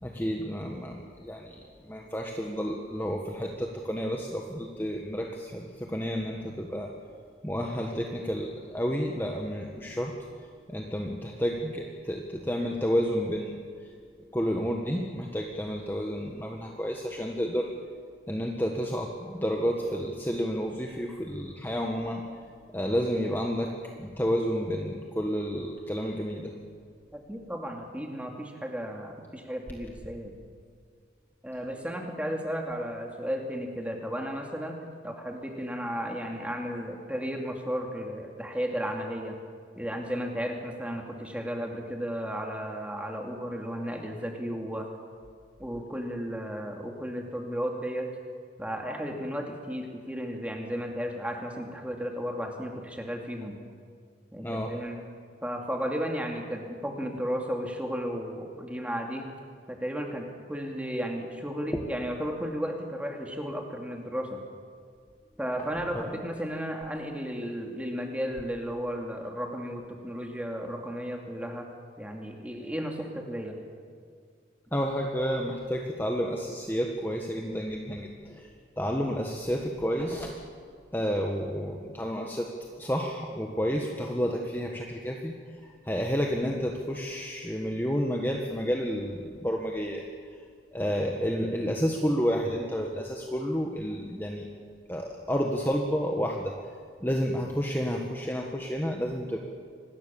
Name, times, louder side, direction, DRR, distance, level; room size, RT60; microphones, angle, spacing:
voice 1, 0.0-6.9 7.4-10.1 10.7-13.6 14.3-17.7 18.3-22.2 22.7-26.5 54.4-54.7 65.7-66.0 74.7-78.5 78.8-80.3 80.9-85.3 85.6-90.0 90.7-94.5 94.9-96.5 97.0-99.4, equal, 10° left, 1 dB, 1.4 m, -30 dB
voice 2, 27.1-30.3 31.4-39.4 39.7-44.9 45.6-48.1 48.6-53.6 54.3-55.0 55.4-59.3 59.7-64.4 65.4-71.7 72.0-73.6, equal, 5° right, 1 dB, 2.6 m, -34 dB
26.0 x 20.0 x 7.1 m, 2.1 s
head